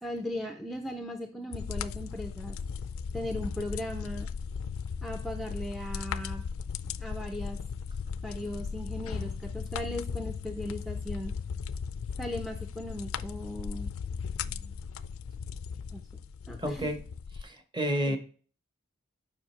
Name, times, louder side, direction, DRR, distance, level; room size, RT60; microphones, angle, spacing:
voice 1, 0.0-2.6 3.1-4.3 5.0-6.4 7.0-7.6 8.2-11.3 12.2-13.9 14.4-14.8 15.9-16.0 16.5-16.9 18.1-18.2, left 1 dB, ahead, 5 dB, 0.4 m, -37 dB
sound 1, 1.5-17.4, left 6 dB, 70° left, 0.4 m, -37 dB
voice 2, 16.6-17.0 17.4-18.2, equal, 20° right, 7 dB, 0.9 m, -30 dB
7.3 x 5.5 x 3.2 m, 0.41 s
head